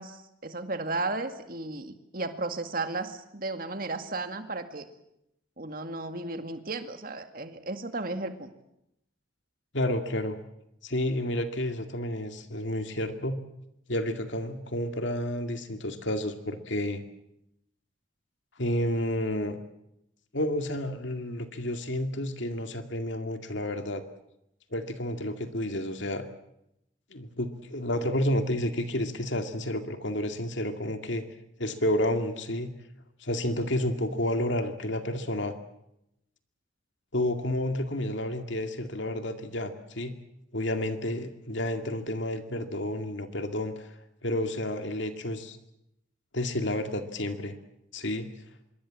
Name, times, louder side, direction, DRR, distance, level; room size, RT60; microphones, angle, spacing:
voice 1, 0.0-4.9 5.6-8.5, right 2 dB, 45° right, 8 dB, 2.1 m, -34 dB
voice 2, 9.7-10.4 10.8-13.4 13.9-17.0 18.6-19.6 20.3-24.0 24.7-26.3 27.1-31.2 31.6-32.7 33.2-35.5 37.1-40.1 40.5-43.9 44.2-45.6 46.3-47.5 47.9-48.3, left 1 dB, 65° left, 7 dB, 2.2 m, -30 dB
25.5 x 23.0 x 7.6 m, 0.82 s
head